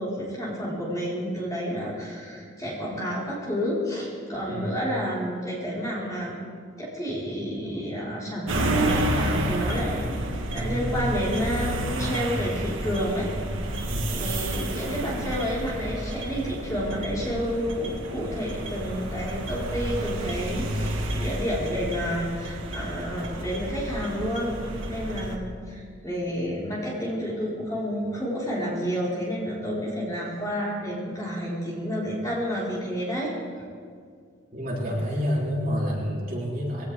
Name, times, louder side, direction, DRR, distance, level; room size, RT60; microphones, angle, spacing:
voice 1, 0.0-6.4 6.8-10.1 10.5-13.3 14.0-33.3, equal, 15° left, -7 dB, 4.4 m, -30 dB
sound 1, 8.5-25.4, right 1 dB, 85° right, 1.8 m, -30 dB
voice 2, 34.5-36.9, equal, 45° right, -5 dB, 3.3 m, -28 dB
22.0 x 17.0 x 3.6 m, 2.1 s
head